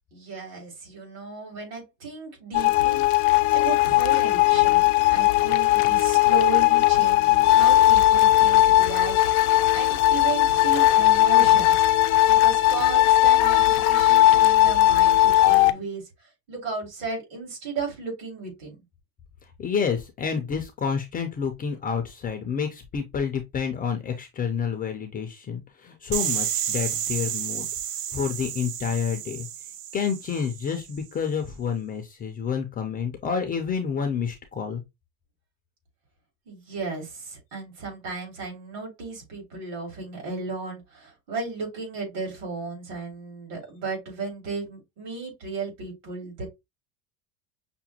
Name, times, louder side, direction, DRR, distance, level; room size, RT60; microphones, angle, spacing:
voice 1, 0.1-11.8 12.3-18.8 36.5-46.5, right 4 dB, 65° right, 2.9 m, -35 dB
sound 1, 2.5-15.7, left 14 dB, 90° left, 0.6 m, -18 dB
voice 2, 19.6-27.7 28.1-29.5 29.9-34.8, left 6 dB, 20° left, 0.4 m, -29 dB
sound 2, 26.1-30.9, right 10 dB, 45° right, 0.4 m, -31 dB
5.9 x 2.2 x 2.7 m
cardioid pair, 150°, 42 cm